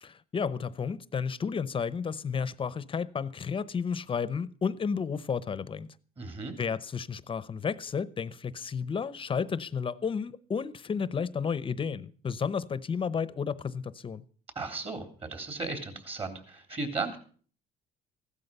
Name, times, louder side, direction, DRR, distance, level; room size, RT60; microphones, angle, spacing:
voice 1, 0.0-5.9 6.6-14.2, left 6 dB, 30° left, 0.8 m, -32 dB
voice 2, 6.2-6.6 14.6-17.2, right 3 dB, 35° right, 3.6 m, -35 dB
15.5 x 12.5 x 5.5 m
cardioid pair, 110°, 17 cm